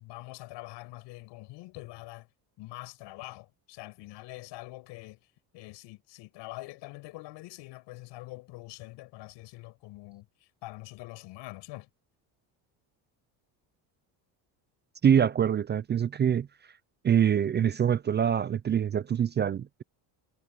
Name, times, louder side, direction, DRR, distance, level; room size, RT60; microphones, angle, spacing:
voice 1, 0.0-2.3 2.6-5.2 5.5-11.9, left 19 dB, 80° left, 5.9 m, -44 dB
voice 2, 15.0-16.5 17.0-19.8, right 8 dB, 25° right, 0.4 m, -25 dB
cardioid pair, 135°, 42 cm